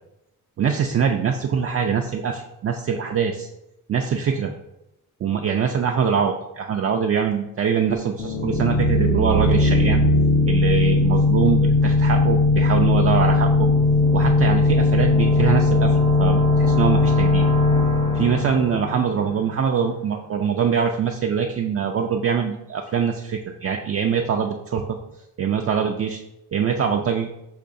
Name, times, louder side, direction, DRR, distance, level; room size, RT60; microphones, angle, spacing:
voice 1, 0.6-3.5 3.9-4.5 5.2-10.0 10.4-13.7 14.1-17.5 18.1-25.0 25.4-26.2 26.5-27.3, right 7 dB, 40° right, 2 dB, 0.4 m, -23 dB
sound 1, 8.2-19.8, left 2 dB, 65° left, 0.9 m, -19 dB
6.6 x 3.0 x 2.6 m, 0.89 s
cardioid pair, 90°, 35 cm